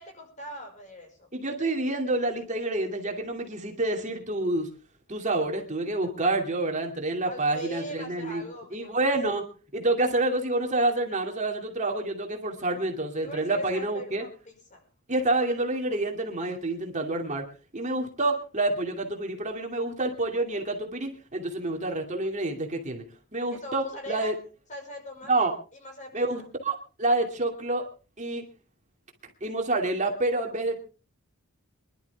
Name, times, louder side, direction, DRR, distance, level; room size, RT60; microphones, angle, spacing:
voice 1, 0.0-1.3 7.2-9.0 13.2-14.8 23.5-24.3 24.7-26.5, left 1 dB, 35° left, 4 dB, 5.5 m, -42 dB
voice 2, 1.3-4.7 5.1-8.4 8.7-9.5 9.7-14.2 15.1-17.4 17.7-23.0 23.3-24.3 25.3-25.5 26.1-27.8 28.2-28.4 29.4-30.8, right 2 dB, 35° right, 3 dB, 2.6 m, -28 dB
24.5 x 12.0 x 3.5 m, 0.35 s
head